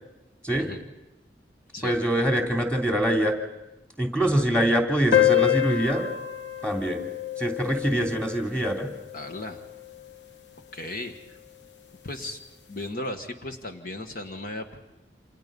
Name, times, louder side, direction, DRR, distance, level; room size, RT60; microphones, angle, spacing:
voice 1, 1.8-3.3 4.0-6.1 6.6-7.0 7.4-8.9, right 1 dB, 5° left, 1 dB, 3.1 m, -24 dB
sound 1, 5.1-10.1, left 12 dB, 90° left, 1.0 m, -27 dB
voice 2, 9.1-9.6 10.7-11.4 12.0-12.4 12.7-14.8, left 1 dB, 55° left, 5 dB, 1.5 m, -36 dB
29.0 x 27.5 x 5.4 m, 0.97 s
head